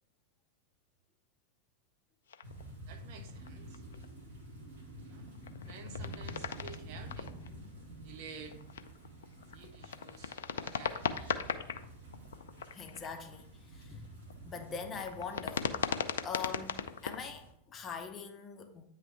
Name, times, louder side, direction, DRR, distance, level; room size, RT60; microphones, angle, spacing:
sound 1, 2.3-2.8 3.2-4.1 5.0-7.8 8.5-11.8 12.1-13.2 14.0-14.4 15.0-17.1, left 7 dB, 65° left, 0.4 m, -38 dB
sound 2, 2.4-17.5, equal, 65° right, 1.4 m, -49 dB
voice 1, 2.9-3.8 5.0-5.3 5.6-7.3 8.0-8.6 9.5-11.5, right 5 dB, 45° right, 0.7 m, -51 dB
voice 2, 12.7-14.1 14.4-18.8, left 6 dB, 25° left, 0.7 m, -43 dB
8.9 x 3.2 x 3.3 m
figure-of-eight pair, 90°, 0 cm